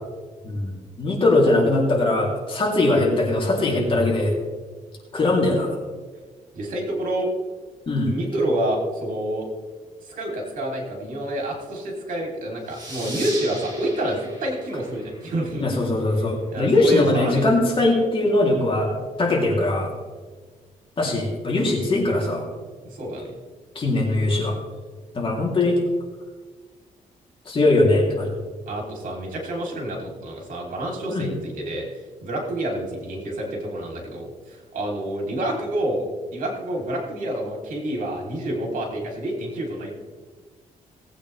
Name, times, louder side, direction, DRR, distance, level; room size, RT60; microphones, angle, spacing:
voice 1, 0.4-4.3 5.1-5.7 7.9-8.1 15.6-18.9 19.2-19.9 21.0-22.5 23.7-24.5 25.1-25.8 27.4-28.3 31.1-31.3, left 2 dB, 40° left, -2 dB, 3.3 m, -21 dB
voice 2, 6.5-7.3 8.1-9.5 10.0-15.7 16.5-17.5 22.9-23.3 28.7-31.9 32.2-36.1 36.3-39.9, right 1 dB, 75° right, 0 dB, 3.6 m, -28 dB
sound 1, 12.7-15.9, right 1 dB, 30° right, 4.2 m, -38 dB
18.5 x 8.7 x 3.4 m, 1.4 s
cardioid pair, 110°, 14 cm